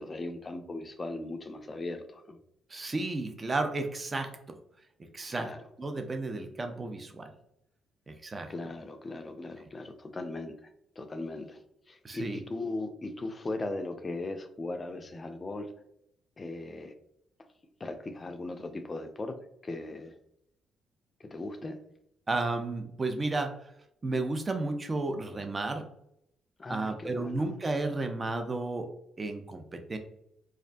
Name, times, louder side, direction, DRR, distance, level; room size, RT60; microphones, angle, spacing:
voice 1, 0.0-2.4 5.3-5.6 8.5-10.6 11.0-11.6 11.9-15.7 16.4-16.9 17.8-19.4 19.6-20.2 21.2-21.8 26.6-27.5, left 2 dB, 35° left, 7 dB, 0.3 m, -38 dB
voice 2, 2.7-4.6 5.1-5.5 5.8-7.3 8.1-8.5 12.0-12.4 22.3-23.6 24.0-25.9 26.7-28.9 29.2-30.0, right 2 dB, 30° right, 6 dB, 0.4 m, -32 dB
2.3 x 2.1 x 2.5 m, 0.76 s
hypercardioid pair, 50°, 0 cm